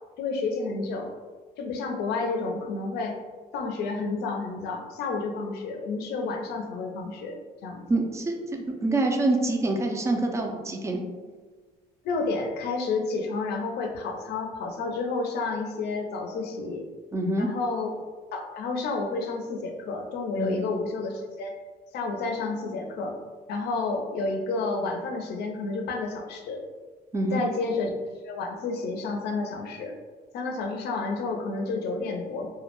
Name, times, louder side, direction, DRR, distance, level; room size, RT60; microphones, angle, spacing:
voice 1, 0.2-1.1 1.6-3.2 3.5-8.0 12.0-16.8 17.4-18.0 18.3-21.5 21.9-23.2 23.5-26.6 27.3-27.9 28.2-29.9 30.3-32.5, left 3 dB, 75° left, 3 dB, 0.5 m, -30 dB
voice 2, 7.9-11.0 17.1-17.5 20.4-20.6 27.1-27.4, right 2 dB, 15° right, 2 dB, 0.3 m, -26 dB
2.2 x 2.1 x 2.9 m, 1.4 s
cardioid pair, 110°, 17 cm